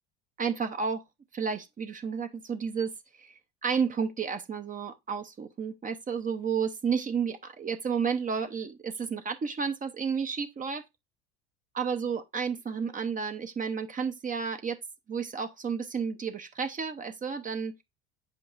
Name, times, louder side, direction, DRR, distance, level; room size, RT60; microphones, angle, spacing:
voice 1, 0.4-1.0 1.3-3.3 3.6-10.8 11.7-14.8 15.1-17.8, right 6 dB, 25° right, 0.8 m, -31 dB
7.7 x 5.2 x 2.5 m
hypercardioid pair, 70°, 29 cm